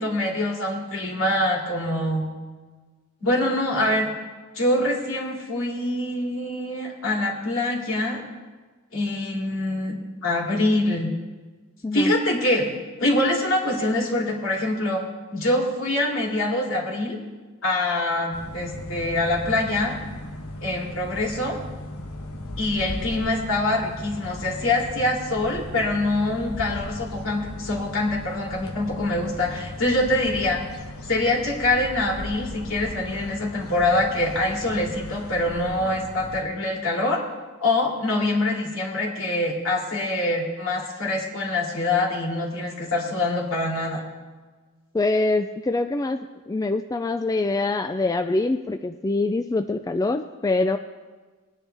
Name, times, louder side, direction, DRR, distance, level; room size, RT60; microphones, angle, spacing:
voice 1, 0.0-2.3 3.2-4.1 4.5-8.2 8.9-11.1 11.9-12.7 13.0-15.0 15.3-17.2 17.6-20.0 20.6-21.6 22.6-30.6 31.1-37.2 37.6-44.0, left 1 dB, 65° left, -2 dB, 2.9 m, -24 dB
sound 1, 18.3-36.4, left 1 dB, 85° left, 1.2 m, -37 dB
voice 2, 44.9-46.2 46.5-50.8, left 2 dB, 15° left, 7 dB, 0.3 m, -24 dB
20.5 x 10.0 x 3.4 m, 1.3 s
head